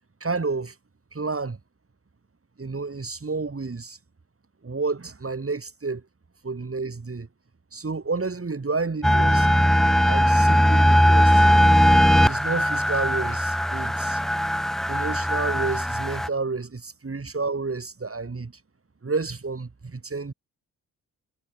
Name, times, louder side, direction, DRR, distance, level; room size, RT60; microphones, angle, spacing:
voice 1, 0.2-0.8 1.1-1.6 2.6-4.0 4.6-6.0 6.4-7.3 7.7-9.7 10.1-11.5 12.2-14.2 14.9-18.5 19.0-20.3, right 4 dB, 35° right, 5.5 m, -30 dB
sound 1, 9.0-16.3, equal, ahead, 0.4 m, -19 dB
hypercardioid pair, 40°, 40 cm